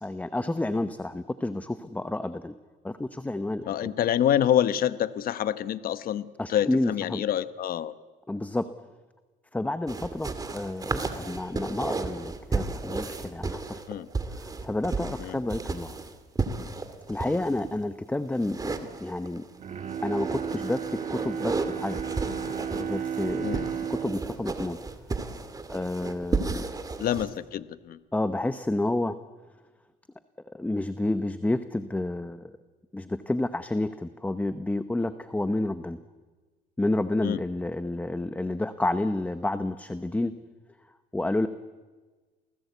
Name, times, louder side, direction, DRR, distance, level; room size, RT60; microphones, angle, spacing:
voice 1, 0.0-2.5 2.8-3.9 6.4-7.2 8.3-8.7 9.5-13.8 14.3-15.9 17.1-18.7 19.0-19.4 20.0-23.5 23.8-24.8 25.7-26.7 28.1-29.2 30.5-32.5 32.9-36.0 36.8-40.4 41.1-41.5, left 2 dB, 10° left, 11 dB, 0.9 m, -30 dB
voice 2, 3.7-7.9 13.9-14.1 15.2-15.4 23.4-23.7 27.0-28.0 37.2-37.4, left 10 dB, 60° left, 13 dB, 1.1 m, -27 dB
sound 1, 9.9-17.7 18.4-19.5 19.9-27.3, right 3 dB, 20° right, 2.3 m, -33 dB
Bowed string instrument, 19.5-25.8 26.2-26.3, right 8 dB, 45° right, 2.4 m, -34 dB
29.0 x 19.0 x 8.3 m, 1.3 s
cardioid pair, 110°, 17 cm